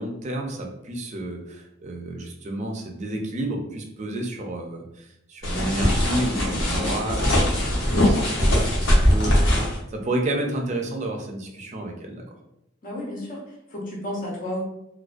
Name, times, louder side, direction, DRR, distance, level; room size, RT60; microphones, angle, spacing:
voice 1, 0.0-12.2, right 1 dB, 35° right, 2 dB, 0.4 m, -31 dB
sound 1, 5.4-9.8, equal, 80° left, 0.7 m, -21 dB
voice 2, 12.8-14.6, left 1 dB, 45° left, -3 dB, 0.7 m, -32 dB
2.3 x 2.2 x 2.4 m, 0.85 s
head